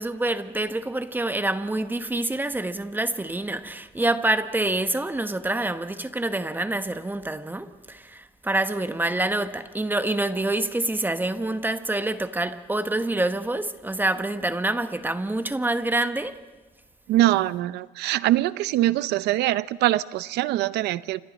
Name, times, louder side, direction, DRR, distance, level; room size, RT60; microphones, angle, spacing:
voice 1, 0.0-16.4, right 2 dB, 10° right, 1.1 m, -26 dB
voice 2, 17.1-21.2, right 15 dB, 80° right, 0.6 m, -23 dB
29.5 x 27.0 x 4.2 m
cardioid pair, 110°, 17 cm